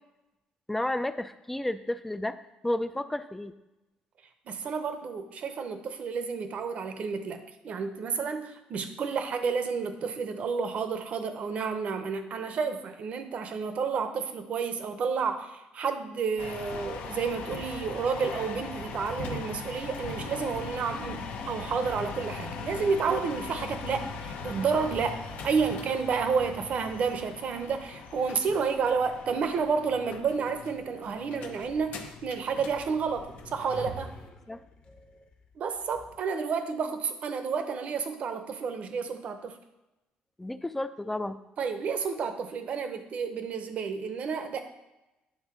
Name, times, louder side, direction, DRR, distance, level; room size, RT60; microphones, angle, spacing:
voice 1, 0.7-2.4 2.6-3.5 34.5-35.3 40.4-41.4, left 1 dB, 10° left, 12 dB, 0.4 m, -32 dB
voice 2, 4.5-34.1 35.6-39.6 41.6-44.6, right 5 dB, 50° right, 8 dB, 0.8 m, -30 dB
sound 1, 16.4-34.3, left 4 dB, 75° left, 0.9 m, -40 dB
sound 2, 31.6-36.2, left 2 dB, 45° left, 1.1 m, -55 dB
9.7 x 3.6 x 6.0 m, 1.0 s
cardioid pair, 130°, 3 cm